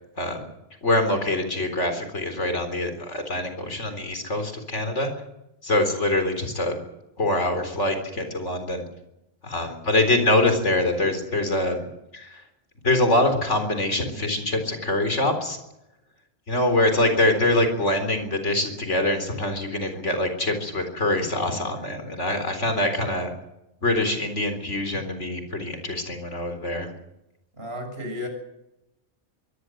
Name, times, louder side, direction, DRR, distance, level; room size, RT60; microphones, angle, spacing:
voice 1, 0.2-0.5 0.8-5.1 5.6-6.8 7.2-8.8 9.4-12.4 12.8-15.6 16.5-23.3 23.8-26.9, left 1 dB, 85° left, 7 dB, 4.3 m, -24 dB
voice 2, 27.6-28.3, left 1 dB, 60° right, 4 dB, 7.2 m, -33 dB
23.5 x 17.5 x 7.9 m, 0.88 s
omnidirectional pair, 1.2 m